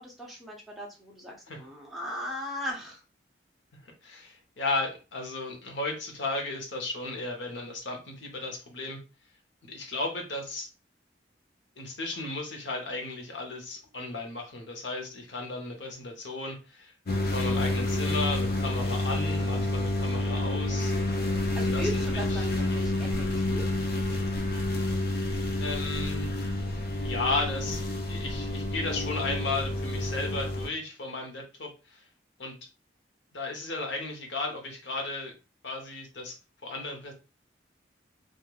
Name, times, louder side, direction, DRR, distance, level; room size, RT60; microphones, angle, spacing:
voice 1, 0.0-3.0 21.5-23.8, equal, ahead, -3 dB, 0.6 m, -38 dB
voice 2, 4.0-9.0 9.6-10.7 11.8-16.9 17.2-20.9 21.7-21.9 25.6-26.3 27.0-27.8 28.1-32.0 32.4-32.5 33.3-35.3 35.6-36.3 36.6-37.1, left 3 dB, 80° left, 2 dB, 0.8 m, -34 dB
sound 1, 17.1-30.7, left 1 dB, 55° left, 0.5 m, -29 dB
3.0 x 2.4 x 2.3 m, 0.31 s
head